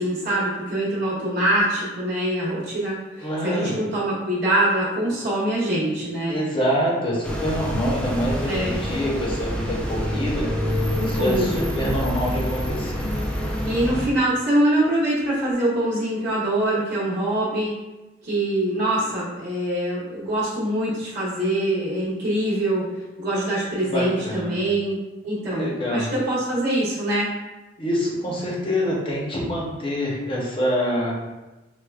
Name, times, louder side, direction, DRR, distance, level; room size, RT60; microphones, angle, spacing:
voice 1, 0.0-6.4 8.4-8.8 10.9-11.7 13.6-17.7 18.2-27.3, right 1 dB, 60° right, -8 dB, 0.9 m, -24 dB
voice 2, 3.2-3.7 6.3-10.5 11.0-13.1 23.8-24.6 25.5-26.1 27.8-31.1, equal, 30° left, -3 dB, 0.7 m, -26 dB
sound 1, 7.2-14.1, equal, 5° left, 0.4 m, -26 dB
4.5 x 2.2 x 2.3 m, 1.1 s
head